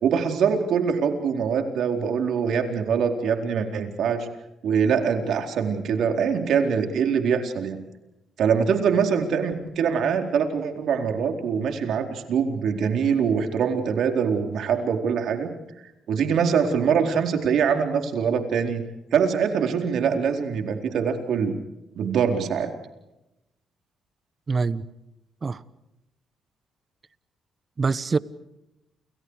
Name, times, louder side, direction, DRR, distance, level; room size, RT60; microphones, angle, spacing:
voice 1, 0.0-4.3 4.6-7.8 8.4-15.5 16.1-18.8 19.1-21.6 22.0-22.7, right 6 dB, 70° right, 5 dB, 4.3 m, -23 dB
voice 2, 24.5-24.9 25.4-25.6 27.8-28.2, right 4 dB, 35° right, 16 dB, 1.2 m, -24 dB
30.0 x 29.5 x 4.9 m, 0.92 s
cardioid pair, 90°, 0 cm